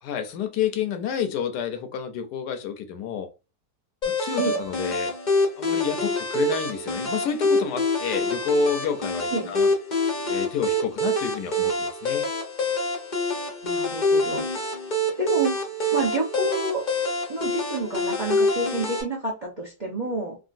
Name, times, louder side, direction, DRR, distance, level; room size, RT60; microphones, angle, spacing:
voice 1, 0.0-3.3 4.0-5.1 5.6-9.7 10.3-12.3, left 9 dB, 75° left, 7 dB, 1.1 m, -29 dB
sound 1, 4.0-19.0, left 1 dB, 45° left, 0.6 m, -26 dB
voice 2, 13.6-14.7 15.2-16.9 17.3-20.4, right 2 dB, 40° right, -2 dB, 0.5 m, -29 dB
3.7 x 2.2 x 2.4 m, 0.29 s
omnidirectional pair, 1.9 m